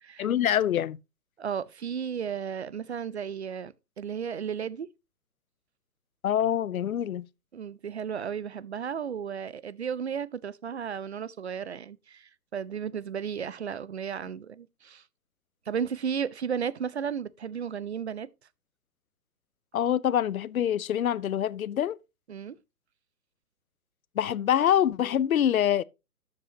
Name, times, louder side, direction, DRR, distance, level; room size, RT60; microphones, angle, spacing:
voice 1, 0.2-1.0 6.2-7.2 19.7-22.0 24.2-25.8, left 10 dB, 60° left, 0.6 m, -25 dB
voice 2, 1.4-4.9 7.5-15.0 15.7-18.3 22.3-22.6, right 7 dB, 45° right, 0.5 m, -34 dB
12.0 x 7.7 x 2.7 m
figure-of-eight pair, 135°, 49 cm